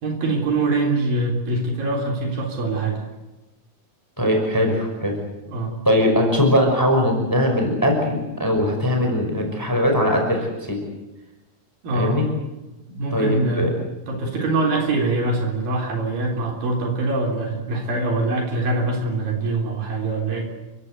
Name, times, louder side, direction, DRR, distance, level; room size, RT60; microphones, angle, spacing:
voice 1, 0.0-3.0 5.5-5.8 11.8-12.2 12.9-13.7 14.1-20.5, right 2 dB, 65° right, 1 dB, 5.4 m, -23 dB
voice 2, 4.2-5.2 5.8-10.8 11.9-12.3 13.1-13.7, left 1 dB, 5° left, 2 dB, 4.9 m, -20 dB
29.5 x 16.5 x 8.1 m, 1.1 s
omnidirectional pair, 4.4 m